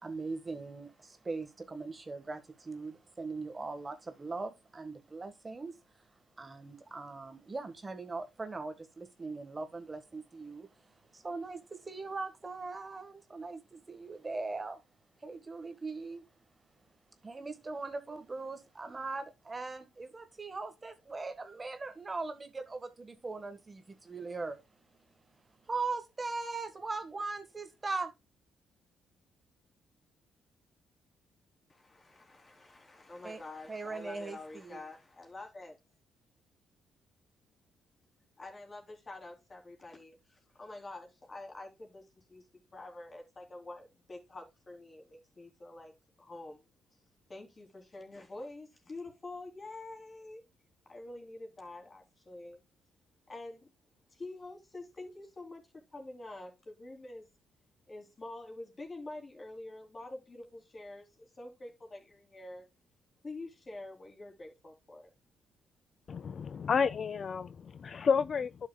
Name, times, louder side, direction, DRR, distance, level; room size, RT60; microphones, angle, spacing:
voice 1, 0.0-5.7 6.4-10.7 11.1-14.8 15.2-16.2 17.2-24.6 25.7-28.1 33.2-33.4 33.7-34.8, right 3 dB, 25° right, 1.5 m, -40 dB
voice 2, 31.7-35.8 38.4-42.4 42.7-46.7 47.3-50.4 50.9-52.6 53.3-53.7 54.1-55.6 55.9-57.3 57.9-62.6 63.2-65.1, left 2 dB, 30° left, 3.5 m, -47 dB
voice 3, 66.1-68.7, left 6 dB, 45° left, 0.3 m, -31 dB
11.0 x 6.6 x 2.3 m
cardioid pair, 90°, 0 cm